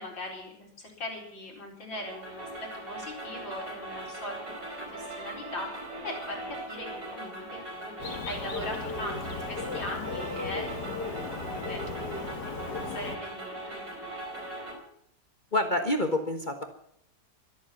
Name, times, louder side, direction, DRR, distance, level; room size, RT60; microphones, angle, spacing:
voice 1, 0.0-2.5 2.7-7.4 7.7-11.8 12.1-14.4, left 1 dB, 85° left, 0 dB, 5.1 m, -41 dB
sound 1, 1.9-14.8, right 2 dB, 45° right, 4.8 m, -40 dB
Bird, 8.0-13.2, left 4 dB, 60° left, 2.1 m, -36 dB
voice 2, 15.5-16.6, left 1 dB, 30° left, 5 dB, 1.3 m, -27 dB
23.5 x 8.5 x 7.1 m, 0.69 s
omnidirectional pair, 2.0 m